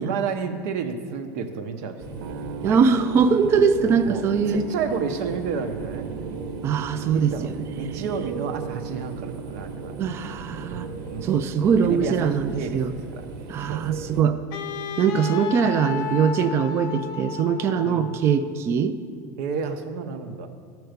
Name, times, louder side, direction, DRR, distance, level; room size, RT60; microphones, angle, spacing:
voice 1, 0.0-2.3 2.6-2.8 4.0-6.1 7.1-10.0 11.0-11.3 11.8-14.0 17.8-18.1 19.4-20.5, right 5 dB, 70° right, 7 dB, 1.0 m, -31 dB
sound 1, 2.0-14.2, right 4 dB, 50° right, 1.1 m, -37 dB
sound 2, 2.2-18.1, right 7 dB, 85° right, 0.6 m, -40 dB
voice 2, 2.6-4.6 6.6-7.5 10.0-10.9 11.2-12.9 13.5-14.4 15.0-19.0, right 6 dB, 30° right, 9 dB, 0.4 m, -22 dB
Wind instrument woodwind instrument, 14.5-18.6, left 8 dB, 55° left, 0.5 m, -33 dB
13.5 x 4.6 x 6.6 m, 2.1 s
cardioid pair, 155°, 8 cm